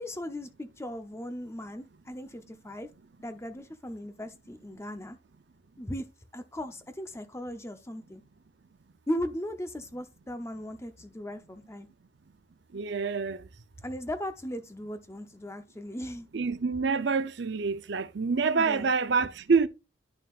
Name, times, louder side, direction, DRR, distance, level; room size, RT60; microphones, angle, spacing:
voice 1, 0.0-2.9 3.2-5.2 5.8-8.2 9.1-11.9 13.8-16.3 18.6-18.9, equal, 15° left, 0.6 m, -37 dB
voice 2, 12.7-13.5 16.3-19.7, right 5 dB, 55° right, 0.6 m, -27 dB
11.0 x 5.6 x 2.4 m
head